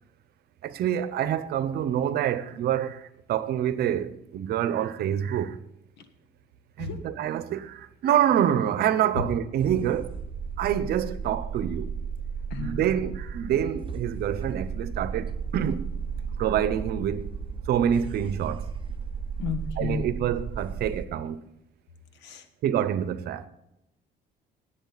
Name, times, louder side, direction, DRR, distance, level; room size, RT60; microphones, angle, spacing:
voice 1, 0.6-5.6 6.8-10.1 10.6-11.9 12.6-15.9 16.4-17.3 17.7-18.7 19.8-21.4 22.6-23.5, right 10 dB, 70° right, 0.9 m, -26 dB
sound 1, 9.6-21.1, right 6 dB, 30° right, 0.8 m, -34 dB
voice 2, 12.5-12.8 19.4-20.1 22.1-22.5, left 6 dB, 85° left, 1.6 m, -32 dB
18.0 x 7.8 x 4.1 m
cardioid pair, 110°, 17 cm